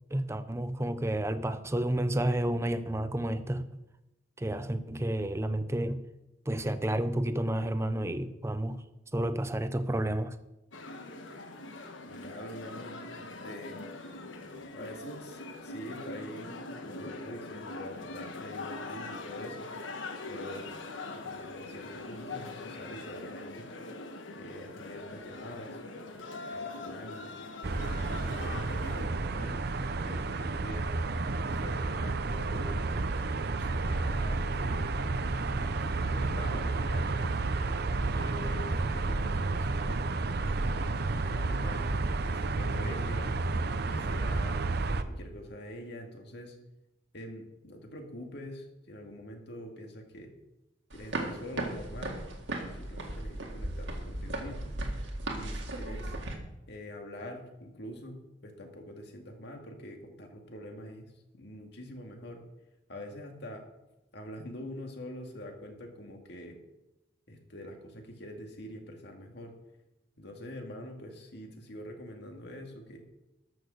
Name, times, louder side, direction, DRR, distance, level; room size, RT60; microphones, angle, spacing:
voice 1, 0.1-3.6 4.4-6.0 6.5-8.8 9.1-10.3, right 1 dB, 15° right, 0.6 m, -30 dB
sound 1, 10.7-29.0, left 2 dB, 80° left, 1.3 m, -42 dB
voice 2, 12.0-13.8 14.7-19.7 20.3-20.7 21.1-23.7 24.4-25.8 26.1-26.3 26.5-27.4 28.0-29.7 30.0-30.9 31.4-32.7 33.4-34.9 35.6-37.4 38.0-40.0 40.6-43.3 43.8-44.6 45.0-46.6 47.1-50.3 50.9-52.2 52.7-54.7 55.3-56.2 56.7-62.4 62.9-63.6 64.1-66.6 67.3-69.5 70.2-73.0, left 1 dB, 60° left, 2.1 m, -45 dB
sound 2, 27.6-45.0, right 3 dB, 55° right, 0.7 m, -31 dB
sound 3, 50.9-56.3, right 1 dB, 70° right, 1.9 m, -36 dB
13.0 x 6.5 x 6.6 m
head